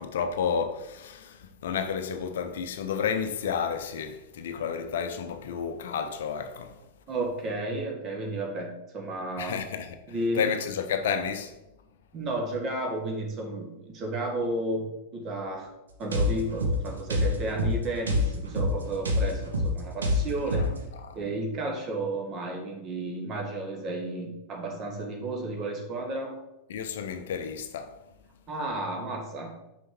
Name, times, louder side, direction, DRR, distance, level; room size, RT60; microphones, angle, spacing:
voice 1, 0.0-6.8 9.4-10.0 10.3-11.5 20.5-21.2 26.7-28.0, left 7 dB, 60° left, 0.6 m, -31 dB
voice 2, 7.1-9.6 10.1-10.5 12.1-14.9 15.1-15.7 16.0-20.7 21.1-26.3 28.5-29.6, right 2 dB, 30° right, 1.6 m, -32 dB
sound 1, 16.1-20.8, left 1 dB, 70° right, 1.1 m, -27 dB
6.3 x 5.3 x 4.4 m
figure-of-eight pair, 90°, 0 cm